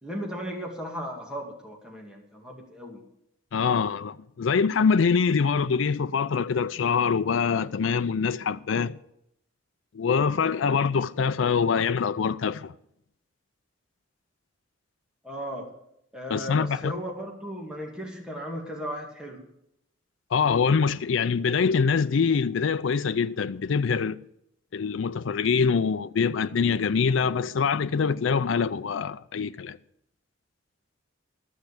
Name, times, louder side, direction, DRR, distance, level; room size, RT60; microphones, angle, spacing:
voice 1, 0.0-3.0 15.2-15.7 16.1-19.4, equal, 5° right, 2.2 m, -36 dB
voice 2, 3.5-9.0 9.9-12.7 16.3-16.9 20.3-24.2 24.7-29.8, left 5 dB, 80° left, 0.4 m, -24 dB
13.0 x 6.4 x 8.1 m
head